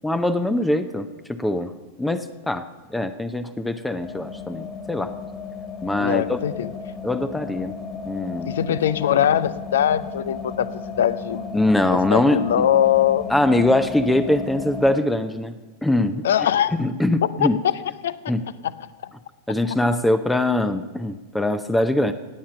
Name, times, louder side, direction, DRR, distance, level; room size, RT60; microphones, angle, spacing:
voice 1, 0.0-1.7 2.0-2.6 2.9-5.1 5.8-6.4 7.0-7.7 8.1-8.5 11.5-12.7 13.3-15.5 15.8-16.2 16.8-17.6 18.3-18.4 19.5-22.1, left 1 dB, 5° left, 11 dB, 0.7 m, -22 dB
sound 1, 4.0-15.0, left 5 dB, 25° left, 2.3 m, -34 dB
voice 2, 6.0-6.7 8.4-11.5 11.9-13.3 16.2-16.7 17.2-17.7 18.0-18.2 18.6-18.9, left 10 dB, 60° left, 17 dB, 0.6 m, -21 dB
17.5 x 8.7 x 7.1 m, 1.2 s
figure-of-eight pair, 90°, 0 cm